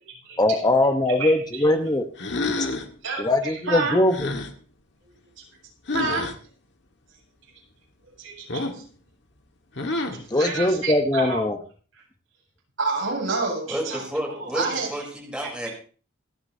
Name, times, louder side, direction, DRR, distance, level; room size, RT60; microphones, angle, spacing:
voice 1, 0.4-2.1 2.6-2.7 3.2-4.3 10.3-11.6, left 1 dB, 20° left, 6 dB, 1.0 m, -21 dB
sound 1, 2.2-2.9 4.1-4.5 5.9-6.3 8.5-8.9 9.7-10.3, left 2 dB, 60° left, 1.6 m, -28 dB
voice 2, 3.0-4.0 5.4-5.5 5.9-6.3 8.2-8.8 10.3-11.4 12.8-14.9 15.4-15.5, right 3 dB, 75° right, -3 dB, 7.7 m, -29 dB
voice 3, 13.7-15.7, equal, 5° right, -1 dB, 3.7 m, -31 dB
27.0 x 9.7 x 2.8 m, 0.39 s
head